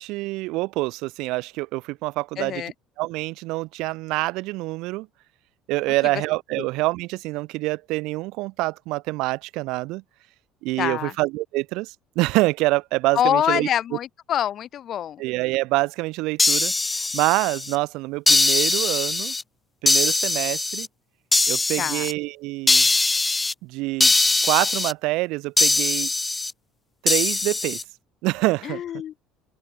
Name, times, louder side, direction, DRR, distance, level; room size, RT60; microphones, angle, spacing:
voice 1, 0.0-2.6 3.0-5.1 5.7-10.0 10.6-13.7 15.2-19.3 19.8-20.9 21.5-22.9 23.6-24.1 24.4-26.1 27.0-27.8 28.2-28.8, right 21 dB, 75° right, 3.6 m, -26 dB
voice 2, 2.4-2.7 6.6-6.7 10.8-11.1 13.1-15.2 21.8-22.1 28.6-29.1, left 10 dB, 50° left, 5.7 m, -25 dB
sound 1, 16.4-17.7 18.3-19.4 19.9-20.9 21.3-22.1 22.7-23.5 24.0-24.9 25.6-26.5 27.1-27.8, left 3 dB, 15° left, 1.4 m, -21 dB
open air
cardioid pair, 110°, 0 cm